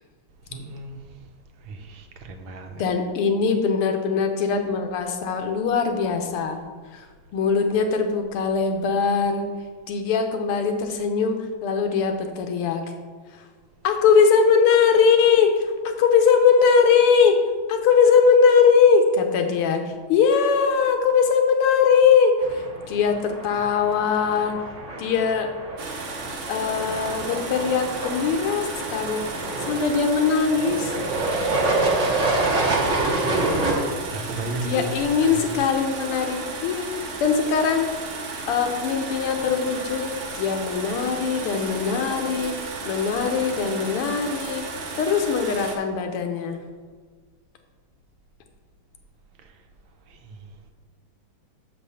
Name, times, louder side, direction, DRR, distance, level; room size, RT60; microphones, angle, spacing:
voice 1, 0.5-1.2 1.6-2.8 33.8-35.6 49.4-49.6 50.1-50.5, right 2 dB, 75° right, 4 dB, 1.6 m, -36 dB
voice 2, 2.8-6.6 6.9-7.0 7.3-9.5 9.9-12.8 13.3-13.4 13.8-17.4 17.7-24.5 25.0-25.5 26.5-29.2 29.7-30.9 34.6-36.9 37.2-37.9 38.5-40.0 40.3-42.5 42.8-44.6 45.0-46.6, left 6 dB, 90° left, 5 dB, 1.8 m, -21 dB
sound 1, 22.4-33.7, right 2 dB, 45° right, 1.2 m, -27 dB
sound 2, 25.8-45.8, right 3 dB, 60° right, 0.8 m, -34 dB
6.8 x 5.2 x 5.6 m, 1.5 s
omnidirectional pair, 2.4 m